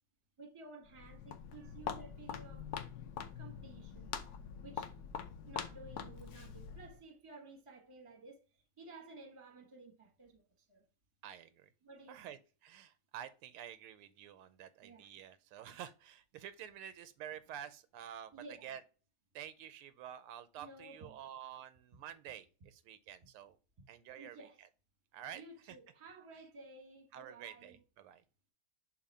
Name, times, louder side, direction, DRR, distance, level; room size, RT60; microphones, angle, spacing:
voice 1, 0.4-2.6 3.1-4.3 4.6-4.9 5.4-8.4 8.8-10.4 10.7-10.8 11.8-12.3 14.8-15.1 18.3-18.7 20.6-21.3 23.8-23.9 24.1-24.6 25.3-27.8, right 3 dB, 20° right, 1.0 m, -54 dB
Walk footsteps, 0.8-7.0, left 7 dB, 70° left, 0.9 m, -44 dB
voice 2, 11.2-11.7 12.1-18.8 19.3-23.6 23.9-24.5 25.1-25.4 25.7-25.8 27.1-28.2, right 10 dB, 85° right, 1.5 m, -49 dB
7.1 x 2.6 x 5.4 m
omnidirectional pair, 2.4 m